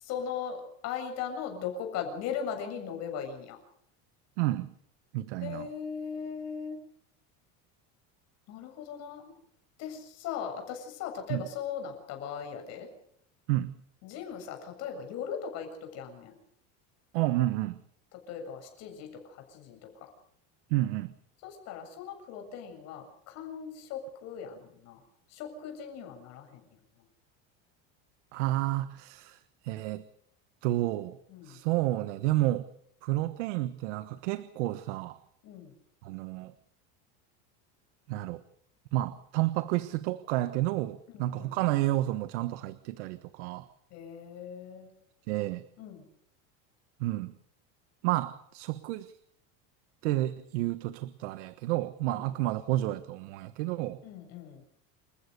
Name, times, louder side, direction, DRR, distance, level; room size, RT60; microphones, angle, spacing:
voice 1, 0.0-3.6 5.4-6.8 8.5-9.2 9.8-12.9 14.0-16.4 18.1-20.1 21.4-25.0 25.3-26.6 27.0-27.1 31.3-31.6 35.4-35.7 41.1-41.7 43.9-44.9 45.8-46.1 52.1-52.2 54.0-54.6, left 7 dB, 50° left, 4 dB, 7.5 m, -39 dB
voice 2, 4.4-4.7 5.1-5.7 11.3-11.4 13.5-13.8 17.1-17.8 20.7-21.1 28.3-30.0 30.6-31.2 31.4-32.7 33.0-35.2 36.0-36.5 38.1-38.4 38.9-43.7 45.3-45.6 47.0-47.3 48.0-49.1 50.0-54.0, right 16 dB, 90° right, 13 dB, 1.3 m, -30 dB
29.0 x 15.0 x 6.8 m, 0.70 s
cardioid pair, 165°, 34 cm